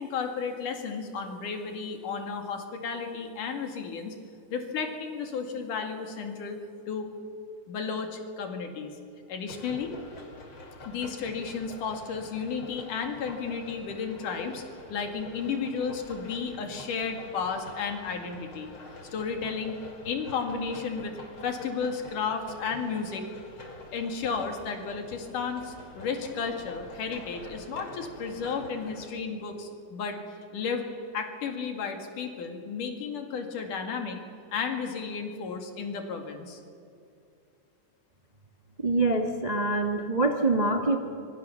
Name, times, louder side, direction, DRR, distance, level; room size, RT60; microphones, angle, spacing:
voice 1, 0.0-4.2 4.5-6.6 6.9-7.1 7.7-8.9 9.3-9.9 10.9-14.6 14.9-18.7 19.1-19.7 20.1-21.1 21.4-23.3 23.9-30.2 30.5-30.8 31.1-34.2 34.5-36.6, left 5 dB, 75° left, 4 dB, 3.7 m, -33 dB
sound 1, 9.5-29.1, left 2 dB, 40° left, 3.5 m, -46 dB
voice 2, 38.8-41.0, right 2 dB, 55° right, 3 dB, 0.4 m, -25 dB
25.5 x 23.0 x 7.1 m, 2.5 s
omnidirectional pair, 3.7 m